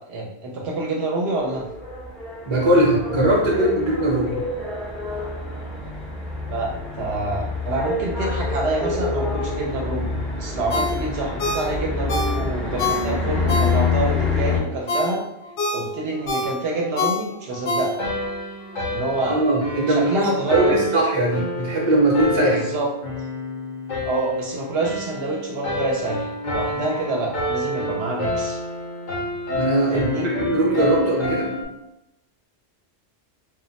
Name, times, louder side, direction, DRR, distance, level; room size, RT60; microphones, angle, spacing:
voice 1, 0.1-1.7 6.5-15.2 15.7-18.0 18.9-19.4 19.9-20.8 22.5-22.9 24.0-28.6 29.9-30.3, right 2 dB, 70° right, -1 dB, 0.8 m, -27 dB
sound 1, 1.4-14.6, left 3 dB, ahead, 0.4 m, -27 dB
voice 2, 2.5-4.4 19.2-22.6 29.5-31.5, right 1 dB, 30° right, -2 dB, 0.7 m, -20 dB
Ringtone, 10.7-14.1 14.6-18.3 18.7-18.8, left 2 dB, 80° left, 0.9 m, -27 dB
sound 2, 18.0-31.6, left 1 dB, 50° left, 0.6 m, -28 dB
2.2 x 2.0 x 3.8 m, 0.84 s
omnidirectional pair, 1.1 m